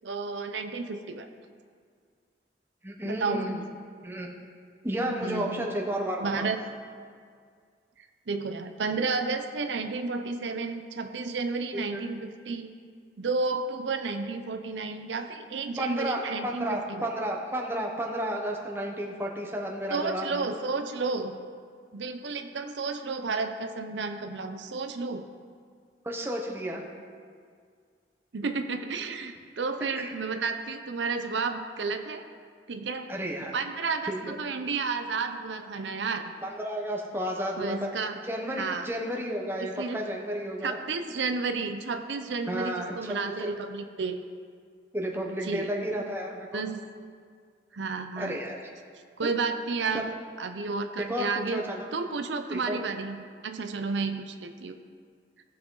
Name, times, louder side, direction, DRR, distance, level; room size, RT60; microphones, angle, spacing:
voice 1, 0.0-1.3 3.0-3.6 5.2-5.7 6.2-6.6 8.0-12.7 13.2-17.1 19.9-21.4 21.9-25.3 28.3-32.3 32.7-33.1 33.5-36.3 37.6-38.2 38.6-38.9 39.6-40.0 40.6-44.2 45.4-45.7 46.5-46.8 47.7-48.4 49.2-50.1 50.4-54.8, right 4 dB, 90° right, 7 dB, 0.6 m, -32 dB
voice 2, 2.8-3.6 4.0-4.3 4.8-6.5 11.7-12.0 15.8-20.5 26.0-26.8 30.0-30.1 33.1-33.5 34.1-34.4 36.4-40.8 42.5-43.6 44.9-46.6 48.2-48.6 49.2-49.3 49.9-50.0 51.0-51.8 52.5-52.8, equal, 15° right, -1 dB, 1.1 m, -32 dB
17.5 x 5.9 x 3.9 m, 2.1 s
head